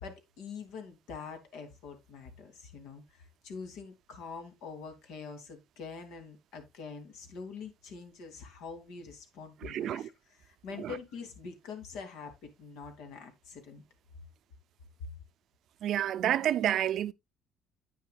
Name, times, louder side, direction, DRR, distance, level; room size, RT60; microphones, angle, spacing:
voice 1, 0.0-13.8, left 5 dB, 70° left, 2.9 m, -45 dB
voice 2, 9.6-10.1 10.8-11.0 15.8-17.1, right 11 dB, 50° right, 0.5 m, -29 dB
10.5 x 9.0 x 2.4 m
cardioid pair, 165°, 0 cm